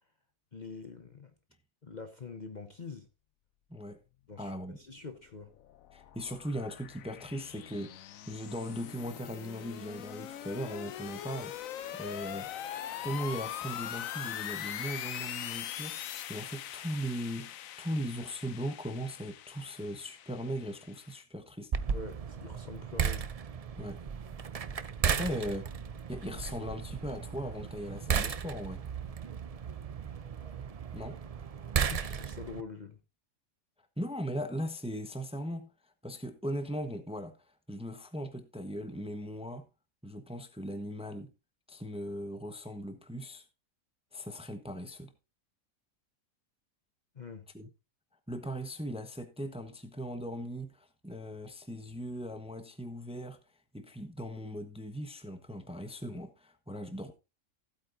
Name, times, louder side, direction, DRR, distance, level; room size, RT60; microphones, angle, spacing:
voice 1, 0.5-1.3 1.8-3.1 4.3-5.5 21.9-23.3 31.9-33.0 47.1-47.5, left 4 dB, 35° left, 1.0 m, -45 dB
voice 2, 3.7-4.0 4.4-4.8 5.9-11.6 11.9-12.5 13.0-16.0 16.3-21.7 23.8-24.0 25.0-25.7 26.1-28.8 30.9-31.2 34.0-35.7 36.0-39.7 40.0-41.3 41.7-43.4 44.1-45.1 47.5-47.7 48.3-53.4 53.7-57.1, equal, 5° right, 1.0 m, -38 dB
sound 1, 5.2-21.2, left 11 dB, 75° left, 1.1 m, -42 dB
sound 2, 21.7-32.6, right 7 dB, 50° right, 0.4 m, -35 dB
15.5 x 8.6 x 2.7 m
omnidirectional pair, 1.5 m